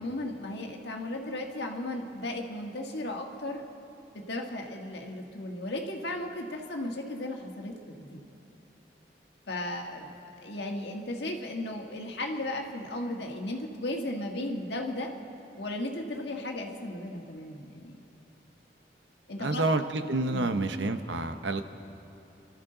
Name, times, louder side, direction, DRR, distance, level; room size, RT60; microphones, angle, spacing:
voice 1, 0.0-3.6 4.1-8.2 9.5-10.1 10.4-15.1 15.6-18.0 19.3-19.6 20.3-20.6, left 1 dB, 75° left, 2 dB, 1.6 m, -35 dB
voice 2, 19.4-21.6, right 2 dB, 85° right, 8 dB, 0.8 m, -28 dB
28.5 x 12.5 x 3.9 m, 2.9 s
head